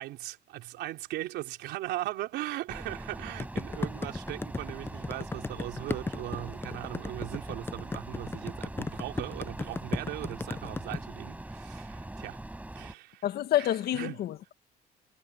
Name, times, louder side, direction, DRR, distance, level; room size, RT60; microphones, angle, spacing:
voice 1, 0.0-12.4 12.8-13.3 13.6-14.2, right 16 dB, 85° right, 3.7 m, -38 dB
sound 1, 2.7-12.9, right 1 dB, 10° right, 6.0 m, -42 dB
sound 2, 3.4-11.0, left 3 dB, 15° left, 0.5 m, -34 dB
voice 2, 13.2-14.5, left 12 dB, 70° left, 1.9 m, -28 dB
cardioid pair, 110°, 17 cm